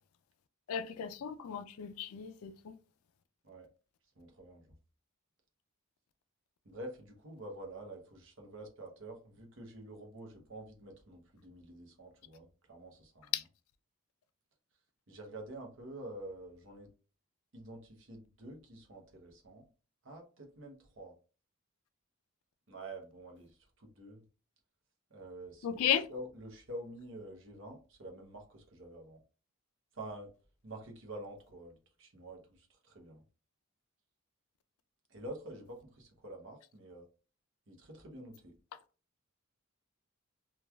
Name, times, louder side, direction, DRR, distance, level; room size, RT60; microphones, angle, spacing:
voice 1, 0.7-2.7 13.3-13.4 25.6-26.1, left 9 dB, 80° left, 0.3 m, -34 dB
voice 2, 4.2-4.7 6.6-13.3 15.1-16.9 17.5-19.7 20.0-21.1 22.7-24.2 25.1-29.2 29.9-30.3 30.6-33.2 35.1-37.1 37.7-38.6, right 1 dB, 60° right, 0.8 m, -48 dB
3.0 x 2.3 x 2.3 m
head